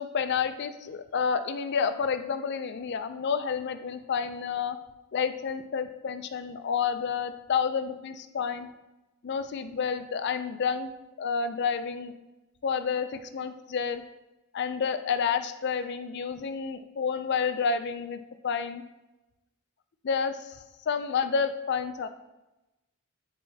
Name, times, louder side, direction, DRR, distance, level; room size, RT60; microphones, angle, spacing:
voice 1, 0.0-4.8 5.1-8.7 9.2-10.9 11.2-12.1 12.6-14.0 14.5-18.8 20.0-22.1, left 6 dB, 50° left, 10 dB, 0.4 m, -30 dB
9.4 x 4.2 x 2.8 m, 1.0 s
head